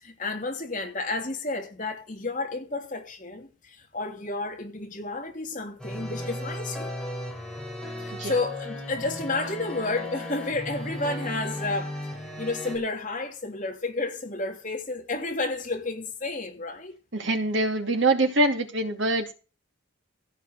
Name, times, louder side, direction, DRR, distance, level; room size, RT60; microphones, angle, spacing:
voice 1, 0.0-6.9 8.0-11.9 12.4-16.9, left 3 dB, 40° left, 3.1 m, -31 dB
sound 1, 5.8-12.8, left 1 dB, 5° left, 3.7 m, -35 dB
voice 2, 17.1-19.3, right 2 dB, 60° right, 2.7 m, -24 dB
16.0 x 5.9 x 6.0 m
head